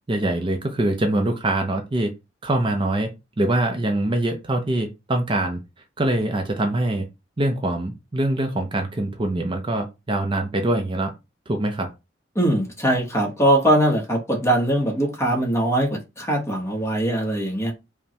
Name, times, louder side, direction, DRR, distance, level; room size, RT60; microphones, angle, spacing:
voice 1, 0.1-2.1 2.4-3.1 3.4-5.6 6.0-7.0 7.4-11.1 11.5-11.9, right 1 dB, 30° right, 0.5 m, -23 dB
voice 2, 12.3-17.7, right 1 dB, 15° left, 1.0 m, -21 dB
5.2 x 2.1 x 2.8 m
head